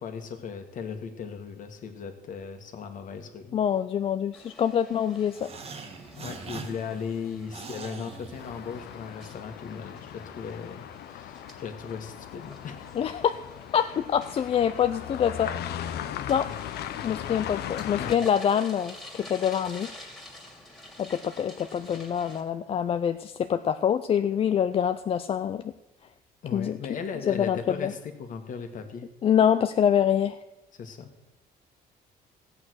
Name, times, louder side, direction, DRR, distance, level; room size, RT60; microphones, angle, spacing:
voice 1, 0.0-3.6 6.1-13.0 18.0-18.2 26.4-29.1 30.7-31.1, left 6 dB, 50° left, 6 dB, 1.8 m, -37 dB
voice 2, 3.5-5.5 13.0-13.4 13.7-15.5 16.3-16.5 17.0-19.9 21.0-25.7 26.5-26.8 27.3-27.9 29.2-30.4, left 8 dB, 35° left, 10 dB, 0.4 m, -25 dB
sound 1, 4.3-22.4, left 1 dB, 5° left, 2.4 m, -49 dB
sound 2, 5.3-9.0, right 4 dB, 35° right, 1.6 m, -42 dB
sound 3, 8.4-18.2, left 10 dB, 80° left, 0.9 m, -38 dB
15.0 x 8.7 x 6.3 m, 1.0 s
cardioid pair, 155°, 17 cm